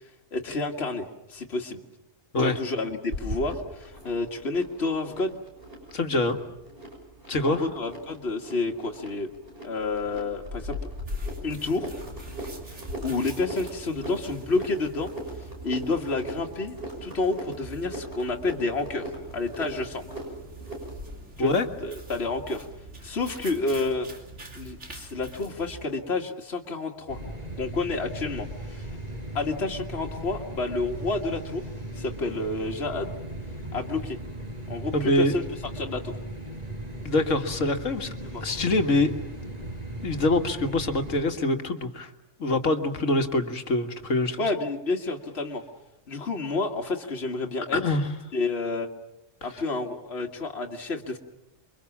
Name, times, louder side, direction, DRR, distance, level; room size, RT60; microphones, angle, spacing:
voice 1, 0.3-1.8 2.4-5.4 7.5-9.3 9.6-10.8 11.4-11.9 13.0-15.1 15.6-16.8 17.0-20.0 21.4-21.5 21.8-22.7 23.0-24.1 24.6-27.2 27.6-28.9 29.3-31.7 32.0-33.2 33.7-34.2 34.7-35.4 35.8-36.2 38.2-38.4 44.4-45.6 46.1-47.8 48.3-48.9 49.4-51.2, left 3 dB, 55° left, 2 dB, 2.1 m, -29 dB
sound 1, 3.1-21.1, equal, 45° right, 7.0 m, -39 dB
voice 2, 5.9-6.4 7.3-7.7 21.4-21.7 34.9-35.3 37.0-38.1 38.4-39.2 40.0-42.1 42.4-44.4 47.7-48.1, left 2 dB, 75° left, 6 dB, 2.0 m, -24 dB
sound 2, 11.1-25.9, right 3 dB, 65° right, 3.5 m, -45 dB
sound 3, 27.1-41.2, right 1 dB, 30° right, 5.4 m, -37 dB
28.5 x 23.5 x 7.3 m, 0.91 s
omnidirectional pair, 1.3 m